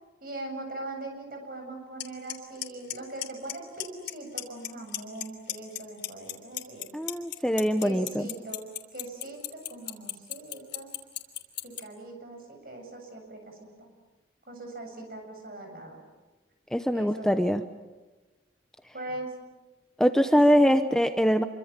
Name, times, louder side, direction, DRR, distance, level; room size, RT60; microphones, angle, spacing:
voice 1, 0.2-6.9 7.8-10.9 11.6-13.9 14.5-16.0 16.9-17.4 18.9-19.3 20.2-20.9, right 2 dB, 50° right, 3 dB, 7.6 m, -41 dB
Clock, 2.0-2.1 2.3-2.6 2.9-3.5 3.8-4.1 4.4-5.2 5.5-11.8, left 13 dB, 70° left, 3.2 m, -32 dB
voice 2, 6.9-8.3 16.7-17.6 20.0-21.4, equal, 5° left, 7 dB, 0.8 m, -23 dB
27.0 x 24.5 x 7.5 m, 1.2 s
head